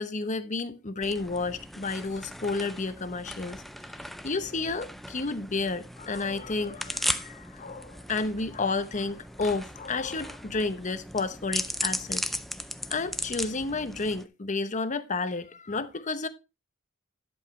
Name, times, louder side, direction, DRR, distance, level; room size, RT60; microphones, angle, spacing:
voice 1, 0.0-3.6 4.2-12.2 12.9-16.3, left 3 dB, 35° left, 0.8 m, -31 dB
sound 1, 1.0-14.3, equal, ahead, 0.4 m, -37 dB
11.0 x 7.3 x 3.2 m
head